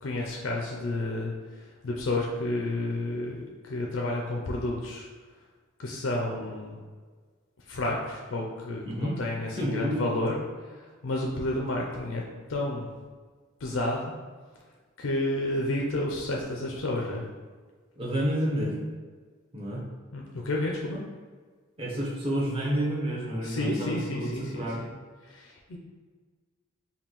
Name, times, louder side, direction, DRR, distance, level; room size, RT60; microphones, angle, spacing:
voice 1, 0.0-5.1 5.8-6.8 7.7-12.2 12.5-12.9 13.6-14.1 15.0-17.2 20.1-21.0 23.4-24.9 25.2-25.8, left 1 dB, 80° left, -1 dB, 0.5 m, -31 dB
voice 2, 9.6-10.0 18.0-18.8 19.5-19.8 21.8-24.8, equal, 30° right, -4 dB, 0.9 m, -29 dB
5.2 x 2.3 x 3.0 m, 1.5 s
head